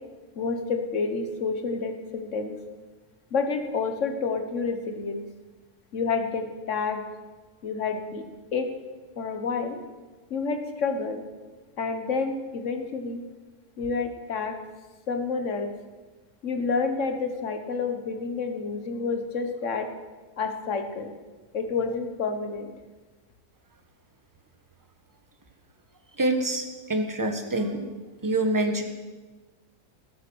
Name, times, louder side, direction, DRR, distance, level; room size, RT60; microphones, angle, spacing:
voice 1, 0.3-2.6 3.3-5.2 5.9-7.0 7.6-8.3 8.5-8.7 9.2-9.8 10.3-11.2 11.8-13.2 13.8-14.6 15.1-15.7 16.4-19.9 20.4-21.1 21.5-22.8, left 4 dB, 50° left, 6 dB, 1.6 m, -29 dB
voice 2, 26.2-27.8 28.2-28.8, right 1 dB, 15° right, 5 dB, 1.1 m, -26 dB
18.5 x 8.0 x 6.3 m, 1.3 s
omnidirectional pair, 1.7 m